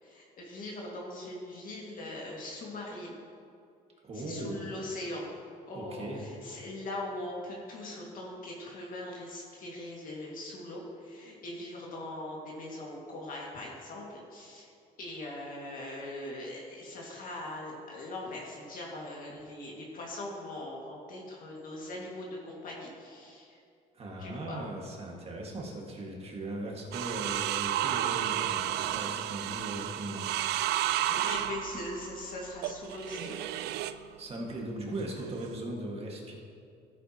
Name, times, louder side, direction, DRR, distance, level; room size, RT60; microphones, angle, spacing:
voice 1, 0.0-3.2 4.1-5.3 5.7-14.7 15.0-23.6 24.2-24.6 31.1-33.4, left 1 dB, 55° left, -3 dB, 2.1 m, -41 dB
voice 2, 4.0-4.7 5.7-6.3 23.9-30.2 34.2-36.3, right 1 dB, 35° right, -1 dB, 1.9 m, -38 dB
sound 1, 26.9-34.0 35.0-35.6, right 12 dB, 80° right, 0.4 m, -32 dB
14.5 x 9.0 x 3.0 m, 2.4 s
cardioid pair, 110°, 17 cm